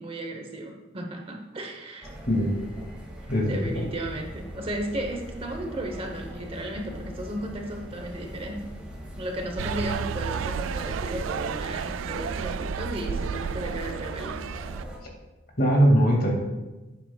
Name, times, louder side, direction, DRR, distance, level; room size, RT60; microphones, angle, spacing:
voice 1, 0.0-2.1 3.2-8.7 9.2-14.4, right 1 dB, 30° right, 2 dB, 1.0 m, -35 dB
sound 1, 2.0-15.0, equal, 5° right, 1.9 m, -41 dB
voice 2, 3.3-3.9 15.6-16.3, equal, 50° left, 0 dB, 2.2 m, -21 dB
sound 2, 9.6-14.8, right 6 dB, 90° right, 0.3 m, -32 dB
11.5 x 9.3 x 2.3 m, 1.1 s
head